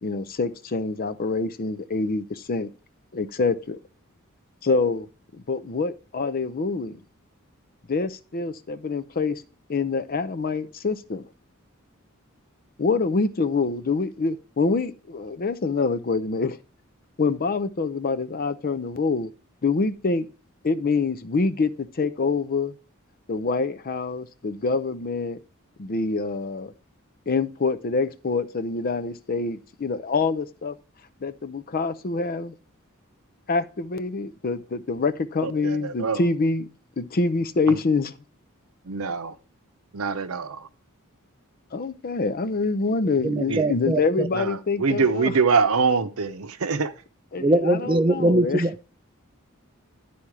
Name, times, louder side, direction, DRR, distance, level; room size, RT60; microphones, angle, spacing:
voice 1, 0.0-2.7 3.1-3.8 4.6-5.1 5.3-7.0 7.9-9.4 9.7-11.3 12.8-16.6 17.2-19.3 19.6-20.3 20.6-22.8 23.3-25.4 25.8-26.7 27.3-30.7 31.2-32.5 33.5-36.7 37.0-38.1 41.7-45.3 47.3-48.6, left 4 dB, 45° left, 0.5 m, -26 dB
voice 2, 35.4-36.2 37.7-37.8 38.9-39.3 39.9-40.7 43.5-43.7 44.3-46.9, right 5 dB, 85° right, 0.7 m, -24 dB
voice 3, 43.2-44.3 47.4-49.0, right 2 dB, 25° right, 0.5 m, -22 dB
11.5 x 4.3 x 4.7 m
head